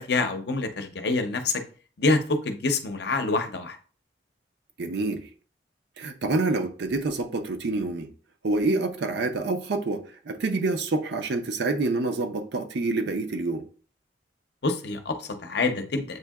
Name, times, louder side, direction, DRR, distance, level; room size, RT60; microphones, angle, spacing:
voice 1, 0.0-1.6 2.0-3.8 14.6-16.2, left 3 dB, 60° left, 0.6 m, -26 dB
voice 2, 4.8-5.2 6.0-8.1 8.4-13.6, right 3 dB, 60° right, 0.5 m, -27 dB
7.6 x 2.7 x 2.3 m
head